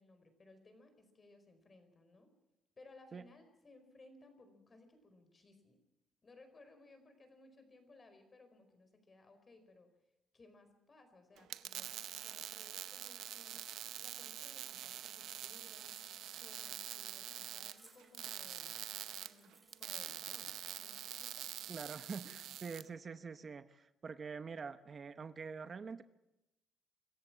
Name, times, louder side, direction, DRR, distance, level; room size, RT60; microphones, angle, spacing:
voice 1, 0.0-2.3 2.8-5.8 6.2-9.9 10.3-11.9 12.2-13.7 14.0-18.8 19.2-21.7, left 2 dB, 35° left, 8 dB, 4.8 m, -62 dB
sound 1, 11.4-22.8, right 12 dB, 80° right, 0.7 m, -45 dB
sound 2, 17.2-21.6, right 2 dB, 20° right, 5.4 m, -66 dB
voice 2, 21.7-26.0, right 5 dB, 40° right, 12 dB, 0.8 m, -45 dB
25.0 x 14.0 x 7.4 m, 0.95 s
cardioid pair, 90°, 0 cm